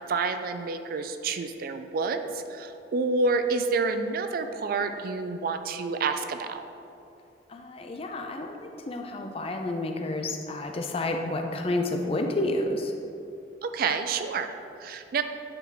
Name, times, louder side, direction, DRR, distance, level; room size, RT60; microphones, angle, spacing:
voice 1, 0.0-6.6 13.6-14.5 14.8-15.2, right 4 dB, 55° right, 8 dB, 0.3 m, -28 dB
voice 2, 7.5-12.9, left 2 dB, 35° left, 4 dB, 0.5 m, -30 dB
8.7 x 3.4 x 3.9 m, 2.6 s
head